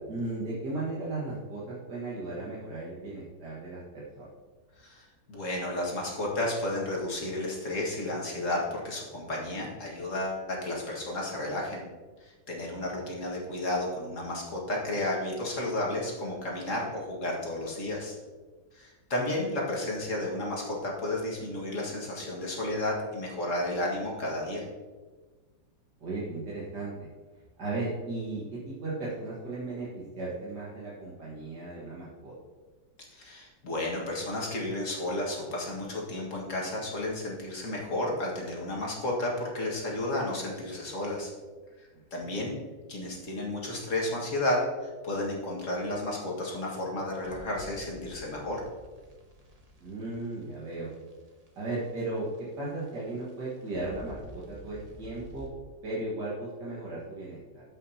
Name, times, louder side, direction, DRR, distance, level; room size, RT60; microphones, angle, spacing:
voice 1, 0.1-4.3 12.8-13.0 26.0-26.9 27.6-32.3 42.2-42.5 49.8-50.9 51.6-55.5 55.8-57.6, right 2 dB, 65° right, -7 dB, 2.3 m, -36 dB
voice 2, 4.8-11.8 12.2-18.2 18.7-24.6 33.1-41.3 42.1-42.5 42.9-48.6, left 1 dB, 45° left, -3 dB, 2.0 m, -32 dB
sound 1, 47.2-55.5, equal, 25° right, 1.0 m, -50 dB
14.0 x 5.8 x 2.8 m, 1.3 s
omnidirectional pair, 2.0 m